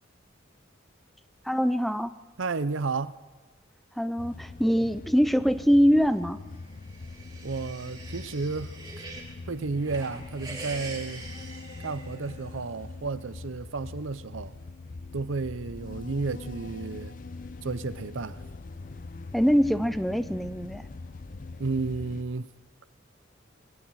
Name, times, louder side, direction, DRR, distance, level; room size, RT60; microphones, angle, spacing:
voice 1, 1.5-2.1 4.0-6.4 19.3-20.8, equal, ahead, 0.6 m, -23 dB
voice 2, 2.4-3.2 4.8-4.9 7.4-9.1 9.5-11.3 11.8-14.6 15.1-17.2 17.6-18.4 21.6-22.5, right 4 dB, 75° right, 0.7 m, -32 dB
sound 1, 4.2-22.2, left 3 dB, 45° left, 0.6 m, -42 dB
sound 2, 6.6-9.3 9.7-12.6, right 3 dB, 20° right, 4.1 m, -44 dB
26.5 x 22.0 x 4.8 m
head